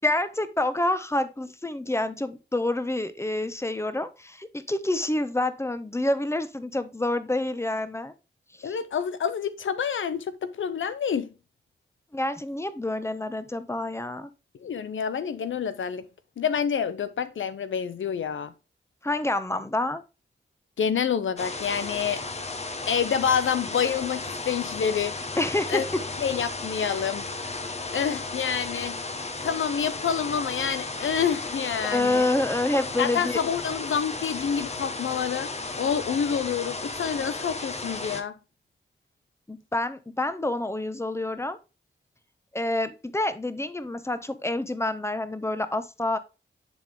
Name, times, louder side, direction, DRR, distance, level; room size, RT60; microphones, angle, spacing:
voice 1, 0.0-8.1 8.6-8.8 12.1-14.3 19.0-20.0 25.4-26.0 26.8-27.0 31.8-33.4 39.5-41.6 42.5-46.2, left 2 dB, 15° left, 1.0 m, -28 dB
voice 2, 8.6-11.3 14.6-16.0 16.4-18.5 20.8-22.2 22.9-25.2 25.7-25.8 26.2-27.2 27.9-29.0 29.4-32.3 33.0-35.5 35.8-38.3, left 7 dB, 75° left, 0.6 m, -27 dB
sound 1, 21.4-38.2, left 3 dB, 35° left, 1.2 m, -34 dB
10.0 x 3.9 x 3.5 m
cardioid pair, 50°, 20 cm